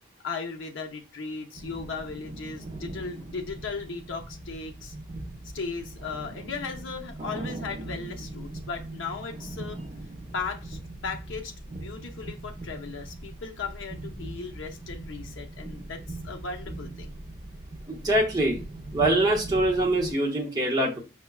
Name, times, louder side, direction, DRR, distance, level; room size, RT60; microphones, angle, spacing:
voice 1, 0.2-4.9 5.5-9.8 10.3-17.1, left 4 dB, 65° left, 2 dB, 0.6 m, -37 dB
sound 1, 1.5-20.1, right 1 dB, 35° right, 0.5 m, -40 dB
voice 2, 17.9-18.6 18.9-21.0, right 1 dB, 20° right, -3 dB, 0.9 m, -24 dB
5.7 x 2.2 x 2.2 m, 0.30 s
head